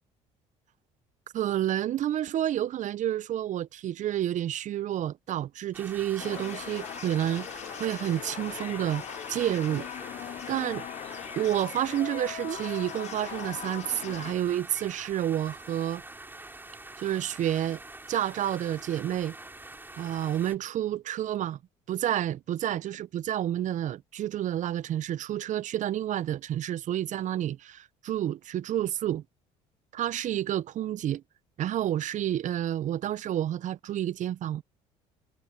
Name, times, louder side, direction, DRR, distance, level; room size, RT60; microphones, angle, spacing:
voice 1, 1.3-7.5 7.8-9.0 9.3-9.9 10.5-10.8 11.4-16.0 17.0-17.8 18.1-19.3 20.0-21.6 21.9-29.2 29.9-31.2 31.6-34.6, right 11 dB, 55° right, 0.7 m, -29 dB
sound 1, 5.7-20.6, right 2 dB, 15° right, 3.5 m, -45 dB
sound 2, 6.2-14.3, left 11 dB, 45° left, 0.5 m, -40 dB
hypercardioid pair, 65°, 15 cm